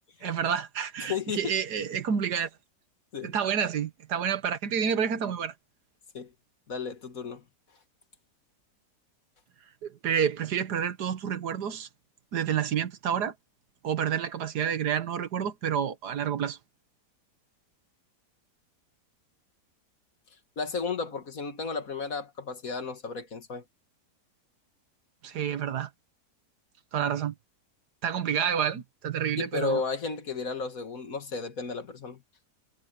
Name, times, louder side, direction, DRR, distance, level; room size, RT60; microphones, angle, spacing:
voice 1, 0.2-2.5 3.2-5.5 9.8-11.9 12.3-13.3 13.8-16.6 25.2-25.9 26.9-27.3 28.0-29.8, right 8 dB, 75° right, 1.7 m, -29 dB
voice 2, 1.0-1.6 3.1-3.3 6.1-6.3 6.7-7.4 20.6-23.6 26.9-27.1 29.4-32.2, left 5 dB, 55° left, 2.2 m, -33 dB
omnidirectional pair, 1.7 m